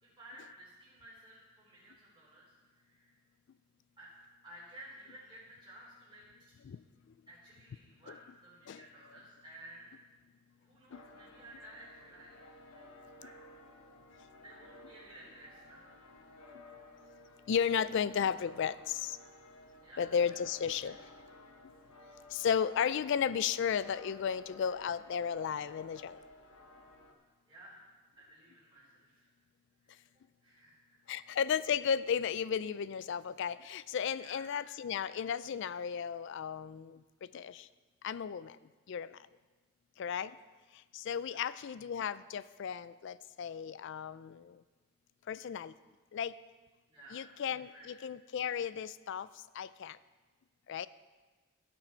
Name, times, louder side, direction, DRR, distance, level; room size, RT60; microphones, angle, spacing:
voice 1, 0.0-3.1 4.0-4.1 4.4-6.6 7.3-9.9 10.6-12.4 13.1-13.3 14.3-15.9 19.8-20.9 27.5-27.8 28.1-29.3 29.8-30.0 30.4-30.8 34.2-34.5 41.2-41.5 46.9-48.0, right 1 dB, 20° right, -11 dB, 3.5 m, -55 dB
sound 1, 10.9-27.1, left 2 dB, 80° left, 1.2 m, -56 dB
voice 2, 17.5-19.2 20.0-21.0 22.3-26.2 31.1-37.7 38.0-38.6 38.9-39.2 40.0-40.3 40.7-44.6 45.3-45.7 46.1-46.3 47.1-49.3 49.5-50.0 50.7-50.9, left 7 dB, 55° left, 17 dB, 0.3 m, -34 dB
15.5 x 6.2 x 4.5 m, 1.3 s
head